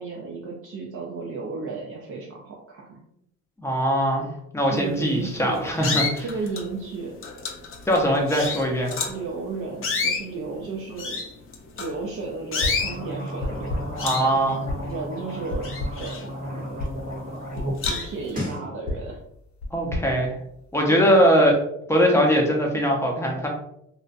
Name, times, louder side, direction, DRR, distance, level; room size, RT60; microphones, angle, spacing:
voice 1, 0.0-3.0 4.6-5.6 6.2-7.2 9.1-11.2 11.8-13.8 14.8-16.8 17.5-19.2 20.9-21.1, right 4 dB, 45° right, -2 dB, 0.5 m, -34 dB
voice 2, 3.6-4.3 4.5-6.2 7.9-9.0 14.0-14.6 19.7-20.4 20.7-21.6 21.9-23.5, equal, 10° left, 0 dB, 0.6 m, -21 dB
sound 1, 5.0-5.2 5.8-6.7 7.2-9.2 9.7-12.1 12.5-13.0 13.4-13.7 14.0-15.2 15.4-16.7 17.2-17.3 17.8-18.3, left 4 dB, 45° left, 0.6 m, -29 dB
sound 2, 12.6-13.0 13.4-14.1 14.7-15.0 15.5-16.2 16.8-17.1 17.6-18.1 18.9-20.9, left 1 dB, 65° left, 0.8 m, -33 dB
sound 3, 12.7-17.8 18.1-18.6, equal, 30° right, 0.9 m, -34 dB
2.5 x 2.1 x 2.5 m, 0.76 s
cardioid pair, 90°, 30 cm